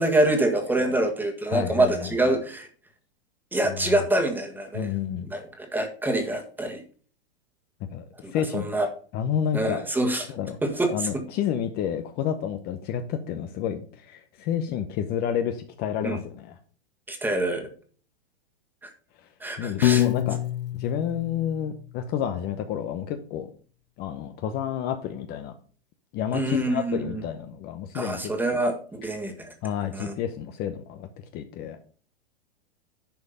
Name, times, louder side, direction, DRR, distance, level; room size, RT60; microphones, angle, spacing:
voice 1, 0.0-2.7 3.5-4.9 5.2-6.8 8.2-8.9 9.5-10.3 10.6-11.2 16.0-16.2 17.1-17.7 18.8-18.9 19.4-20.0 26.3-27.2 27.9-29.5 29.9-30.1, right 1 dB, 5° right, 4 dB, 1.7 m, -26 dB
voice 2, 1.5-2.1 3.6-4.0 4.7-5.3 7.9-8.7 9.1-9.8 10.3-10.6 10.9-16.5 19.6-20.4 20.8-23.5 24.0-25.5 26.1-28.2 28.5-28.6 29.6-31.1 31.3-31.8, left 9 dB, 30° left, 8 dB, 0.9 m, -30 dB
Piano, 19.8-22.0, left 13 dB, 65° left, 0.5 m, -26 dB
10.5 x 5.1 x 5.6 m, 0.43 s
hypercardioid pair, 130°, 31 cm